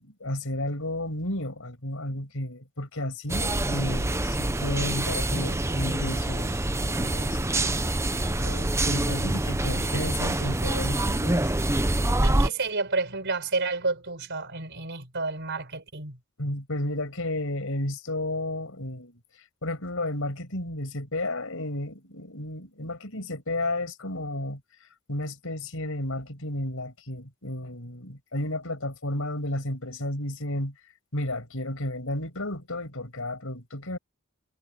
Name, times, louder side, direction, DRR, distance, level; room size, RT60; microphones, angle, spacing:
voice 1, 0.0-7.8 8.4-11.5 16.4-19.2 19.6-24.6 25.1-30.7 31.1-34.0, left 1 dB, 70° left, 6.5 m, -32 dB
sound 1, 3.3-12.5, right 1 dB, 15° right, 0.8 m, -26 dB
voice 2, 12.2-16.2, right 3 dB, 55° right, 4.9 m, -30 dB
head